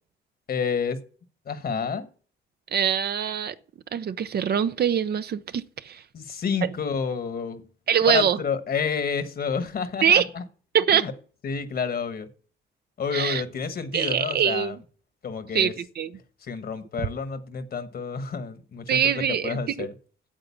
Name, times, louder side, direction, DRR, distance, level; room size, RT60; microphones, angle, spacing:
voice 1, 0.5-1.0 1.5-2.1 6.1-7.6 8.1-10.4 10.9-11.1 11.4-12.3 13.0-14.7 15.2-15.7 16.4-19.0 19.4-19.9, left 6 dB, 50° left, 1.4 m, -29 dB
voice 2, 2.7-3.6 3.9-6.0 6.6-6.7 7.9-8.4 10.0-10.3 10.7-11.1 13.1-13.4 13.9-14.8 15.5-16.1 18.9-19.9, right 8 dB, 55° right, 0.7 m, -23 dB
9.0 x 7.9 x 7.1 m
cardioid pair, 90°, 20 cm